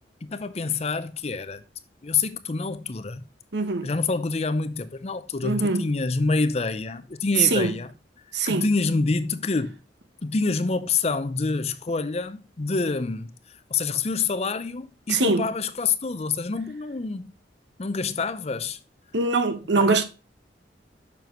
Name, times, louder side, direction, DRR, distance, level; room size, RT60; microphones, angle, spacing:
voice 1, 0.2-1.6 2.0-3.2 3.8-7.9 8.5-9.8 10.2-13.3 13.7-17.3 17.8-18.8 19.7-20.0, left 4 dB, 35° left, 0.5 m, -27 dB
voice 2, 3.5-3.9 5.4-5.8 7.4-7.7 8.3-8.7 15.1-15.5 19.1-20.0, right 3 dB, 75° right, 1.0 m, -22 dB
7.0 x 6.1 x 3.0 m
head